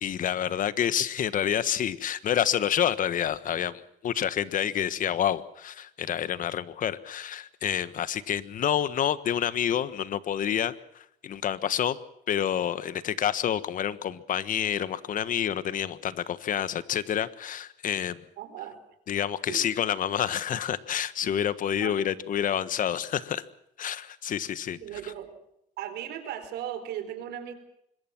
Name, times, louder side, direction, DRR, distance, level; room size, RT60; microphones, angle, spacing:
voice 1, 0.0-12.0 12.3-18.2 19.1-23.4 23.8-24.8, left 9 dB, 55° left, 15 dB, 1.4 m, -28 dB
voice 2, 18.4-18.8 19.5-19.8 21.8-22.0 24.7-25.3 25.8-27.5, right 10 dB, 80° right, 9 dB, 4.4 m, -37 dB
25.5 x 21.5 x 6.1 m, 0.76 s
cardioid pair, 110°, 17 cm